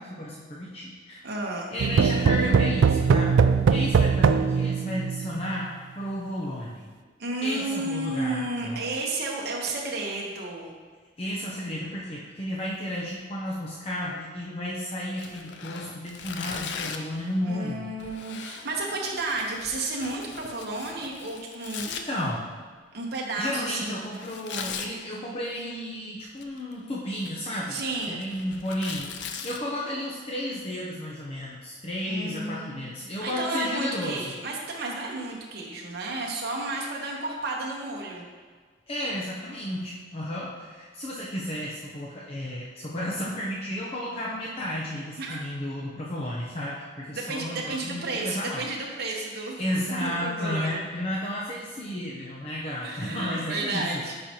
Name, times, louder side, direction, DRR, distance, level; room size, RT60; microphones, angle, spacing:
voice 1, 0.0-1.2 1.7-3.4 3.7-6.8 7.4-8.8 11.2-17.9 21.9-22.4 23.4-27.8 28.1-34.3 38.9-48.6 49.3-54.0, left 1 dB, 35° left, -5 dB, 0.7 m, -33 dB
voice 2, 1.2-1.7 7.2-10.7 17.5-22.1 22.9-24.1 27.7-28.2 32.0-32.8 33.2-38.3 45.2-45.4 47.1-49.6 50.0-50.8 52.8-54.2, right 2 dB, 60° right, -2 dB, 1.0 m, -32 dB
sound 1, 1.8-5.5, right 5 dB, 90° right, 0.3 m, -21 dB
Tearing, 15.1-17.2 18.0-22.0 24.1-24.9 26.2-26.7 27.1-29.6, left 6 dB, 65° left, 0.5 m, -39 dB
9.9 x 4.3 x 2.9 m, 1.5 s
head